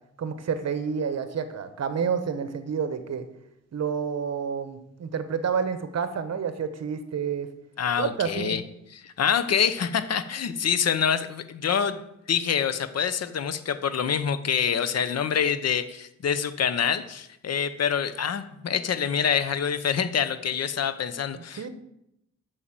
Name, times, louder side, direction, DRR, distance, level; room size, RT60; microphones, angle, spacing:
voice 1, 0.2-3.3 3.7-7.5 8.0-8.6 21.6-21.7, right 6 dB, 60° right, 10 dB, 1.1 m, -29 dB
voice 2, 7.8-8.6 8.9-12.0 12.3-21.7, left 7 dB, 60° left, 13 dB, 0.8 m, -26 dB
8.3 x 6.5 x 7.6 m, 0.83 s
wide cardioid pair, 125°, 29 cm